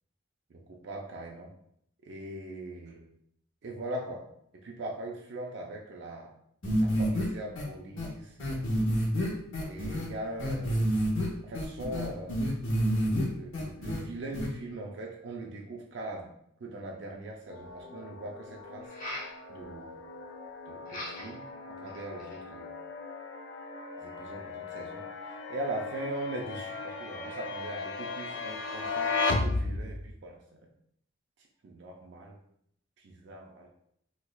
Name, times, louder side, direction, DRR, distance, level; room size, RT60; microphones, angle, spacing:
voice 1, 0.5-1.5 2.1-3.1 3.6-4.2 4.6-6.3 6.8-8.7 9.6-10.8 11.4-12.4 13.3-16.3 16.6-18.9 19.5-20.0 20.7-21.4 21.8-22.7 24.0-25.0 25.5-29.1 29.4-30.4 31.6-32.4 33.0-33.7, right 1 dB, 65° right, -1 dB, 0.4 m, -40 dB
sound 1, 6.6-7.2 7.6-7.7 8.0-8.1 8.4-10.1 10.4-11.3 11.5-13.2 13.5-14.0 14.3-14.5, equal, 90° left, 1.0 m, -28 dB
sound 2, 17.5-30.1, left 3 dB, 65° left, 0.4 m, -36 dB
sound 3, 18.8-19.4 20.9-21.4 21.9-22.4, left 1 dB, 45° left, 1.4 m, -40 dB
4.4 x 2.3 x 2.3 m, 0.70 s
head